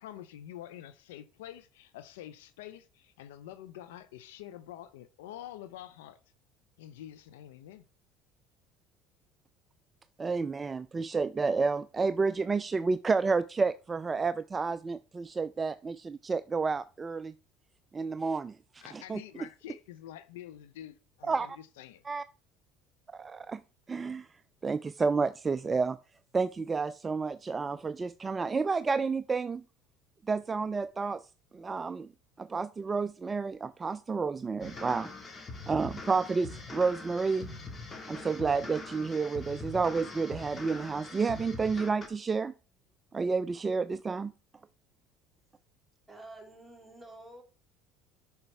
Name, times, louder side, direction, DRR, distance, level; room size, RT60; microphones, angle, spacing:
voice 1, 0.0-6.2 6.8-7.8 18.8-22.0, left 12 dB, 80° left, 0.5 m, -47 dB
voice 2, 10.2-17.3 17.9-19.2 21.3-21.5 22.1-22.2 23.1-23.6 23.9-24.3 24.6-26.0 26.3-29.6 30.3-31.2 31.5-32.1 32.4-35.1 35.7-37.5 38.1-42.5 43.1-44.3, right 4 dB, 25° right, 0.3 m, -30 dB
sound 1, 34.6-42.1, left 3 dB, 30° left, 1.7 m, -43 dB
voice 3, 46.1-47.4, right 2 dB, 5° right, 2.7 m, -49 dB
7.8 x 5.7 x 3.3 m
hypercardioid pair, 70°, 0 cm